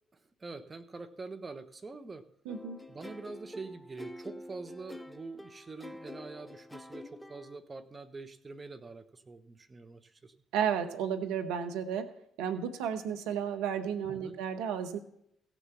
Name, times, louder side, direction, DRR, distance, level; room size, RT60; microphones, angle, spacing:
voice 1, 0.4-2.3 2.9-10.3 14.1-14.3, right 3 dB, 30° right, 8 dB, 1.1 m, -45 dB
voice 2, 2.4-2.8 10.5-12.1 12.4-15.0, right 8 dB, 70° right, 6 dB, 1.0 m, -33 dB
sound 1, 2.5-7.6, left 1 dB, 5° left, 0.7 m, -47 dB
16.5 x 7.0 x 5.8 m, 0.73 s
figure-of-eight pair, 45°, 0 cm